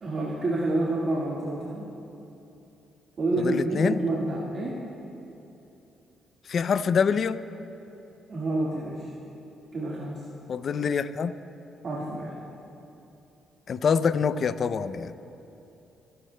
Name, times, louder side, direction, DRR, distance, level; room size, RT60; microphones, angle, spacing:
voice 1, 0.0-1.9 3.2-4.8 8.3-9.1 9.7-10.2 11.8-12.4, right 2 dB, 50° right, -6 dB, 1.8 m, -28 dB
voice 2, 3.4-4.0 6.5-7.4 10.5-11.4 13.7-15.1, left 6 dB, 50° left, 13 dB, 0.4 m, -25 dB
28.0 x 11.5 x 2.2 m, 2.8 s
cardioid pair, 90°, 0 cm